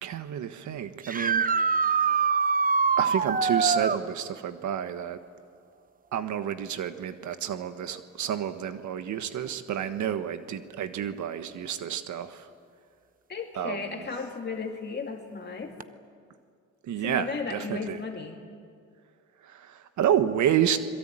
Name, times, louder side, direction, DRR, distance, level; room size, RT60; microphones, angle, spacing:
voice 1, 0.0-1.5 1.8-2.4 3.0-5.2 6.1-12.5 13.6-14.0 16.8-18.0 19.4-20.8, right 9 dB, 75° right, 10 dB, 1.5 m, -30 dB
sound 1, 1.0-4.0 7.3-7.4 9.5-9.6 15.8-15.9, right 5 dB, 30° right, 0.9 m, -24 dB
voice 2, 13.3-15.7 17.0-18.4, left 4 dB, 35° left, 2 dB, 2.6 m, -35 dB
26.5 x 22.5 x 9.1 m, 2.2 s
cardioid pair, 90°, 30 cm